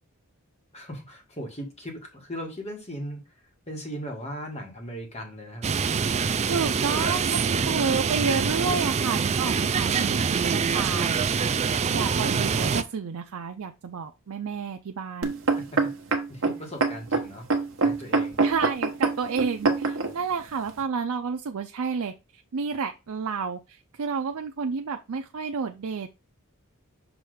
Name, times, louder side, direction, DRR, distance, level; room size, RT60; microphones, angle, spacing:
voice 1, 0.7-3.3 3.7-6.2 7.5-7.6 15.7-15.8 16.3-17.5 17.8-18.4, equal, 30° left, 2 dB, 1.8 m, -38 dB
sound 1, 5.6-12.8, right 6 dB, 30° right, 0.3 m, -25 dB
voice 2, 6.5-11.4 11.9-15.3 18.4-22.1 22.5-26.1, right 5 dB, 85° right, 5 dB, 0.5 m, -30 dB
sound 2, 15.2-20.1 20.8-20.9, right 3 dB, 60° right, 1.1 m, -24 dB
6.2 x 3.1 x 5.0 m, 0.27 s
head